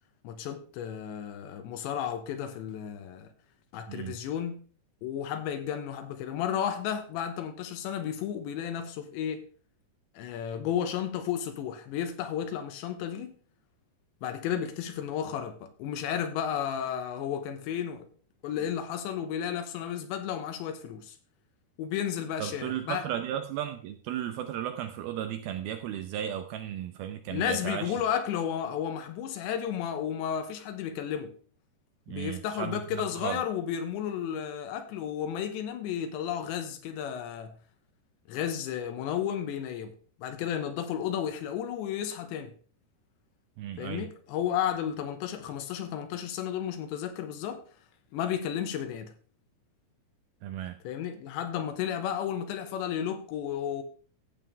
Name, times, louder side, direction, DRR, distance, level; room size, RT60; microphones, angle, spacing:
voice 1, 0.2-3.3 3.7-4.6 5.0-9.5 10.2-13.3 14.2-18.1 18.4-21.2 21.8-23.0 27.3-31.3 32.1-37.5 38.3-39.9 40.2-42.5 43.8-47.6 48.1-49.1 50.8-53.8, left 9 dB, 85° left, 3.4 m, -33 dB
voice 2, 22.4-28.0 32.1-33.4 43.6-44.1 50.4-50.8, right 10 dB, 80° right, 2.2 m, -35 dB
14.5 x 7.3 x 3.4 m
omnidirectional pair, 5.1 m